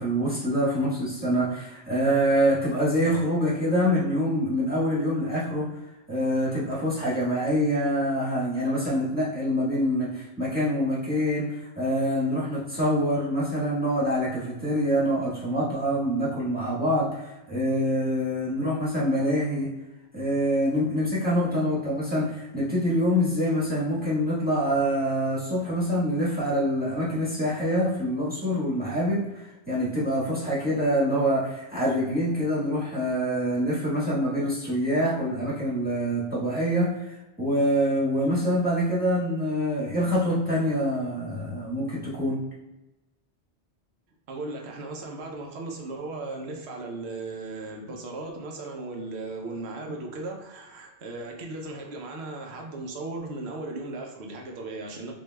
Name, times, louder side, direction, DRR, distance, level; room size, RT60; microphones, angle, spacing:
voice 1, 0.0-5.6 6.1-19.7 20.1-42.4, equal, 10° right, -9 dB, 1.3 m, -25 dB
voice 2, 44.3-55.1, right 2 dB, 70° right, 1 dB, 1.0 m, -36 dB
6.1 x 2.7 x 2.2 m, 1.0 s
omnidirectional pair, 1.2 m